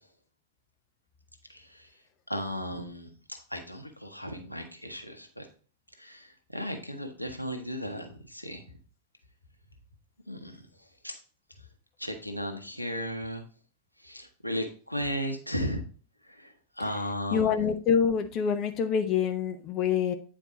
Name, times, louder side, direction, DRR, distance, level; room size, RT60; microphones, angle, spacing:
voice 1, 2.3-5.5 6.0-6.3 6.5-8.6 10.3-10.6 11.0-11.2 12.0-13.5 14.0-15.8 16.2-16.5 16.8-17.5, equal, 90° left, 5 dB, 1.0 m, -35 dB
voice 2, 17.3-20.1, left 7 dB, 35° left, 7 dB, 0.7 m, -26 dB
9.0 x 4.5 x 3.8 m, 0.41 s
figure-of-eight pair, 90°, 0 cm